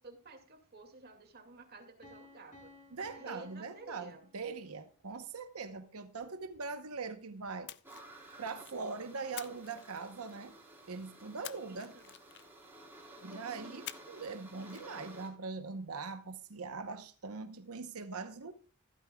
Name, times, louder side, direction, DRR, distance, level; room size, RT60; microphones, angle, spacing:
voice 1, 0.0-2.7 3.1-4.2 11.5-12.1, right 3 dB, 45° right, 2.3 m, -52 dB
Piano, 2.0-4.8, left 2 dB, 30° left, 3.7 m, -58 dB
voice 2, 2.9-7.7 8.4-10.5 10.9-11.9 13.2-18.5, right 4 dB, 75° right, 0.9 m, -42 dB
Splash splatter, 7.7-8.8 9.4-10.5 11.4-12.7 13.9-14.3 14.6-14.8, left 13 dB, 50° left, 0.5 m, -49 dB
sound 1, 7.8-15.3, right 1 dB, 10° right, 4.0 m, -53 dB
15.0 x 12.5 x 2.3 m
head